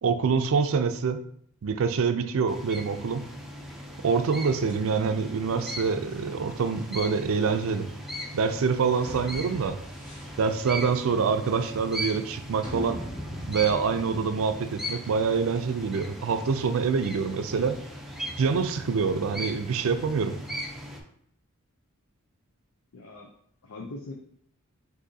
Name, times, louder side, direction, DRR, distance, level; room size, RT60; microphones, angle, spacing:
voice 1, 0.0-1.2 1.6-3.3 4.0-7.9 8.3-9.7 10.4-13.0 13.5-17.7 18.4-20.3, right 5 dB, 70° right, 9 dB, 0.4 m, -26 dB
sound 1, 2.5-21.0, equal, ahead, 0.5 m, -39 dB
sound 2, 4.5-17.7, equal, 20° left, 1.4 m, -45 dB
voice 2, 22.9-23.3 23.6-24.1, left 2 dB, 70° left, 1 dB, 0.5 m, -42 dB
6.3 x 2.6 x 2.7 m, 0.66 s
head